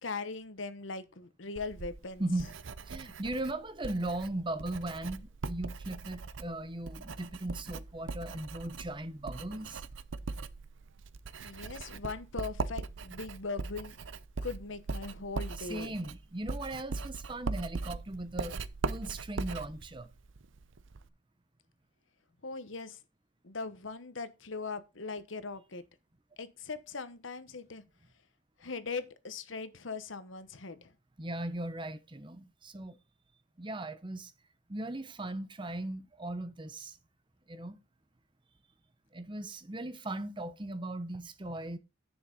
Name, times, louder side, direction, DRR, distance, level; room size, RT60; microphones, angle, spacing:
voice 1, 0.0-2.2 11.4-14.0 14.4-16.0 22.4-23.0 23.4-25.8 26.4-27.8 28.6-30.9, left 4 dB, 80° left, 1.1 m, -40 dB
Writing, 1.6-21.1, right 4 dB, 80° right, 0.6 m, -40 dB
voice 2, 2.9-9.8 15.6-20.1 31.2-33.0 33.6-34.3 34.7-37.0 37.5-37.8 39.1-41.8, right 1 dB, 25° right, 0.8 m, -38 dB
10.0 x 7.1 x 3.9 m
head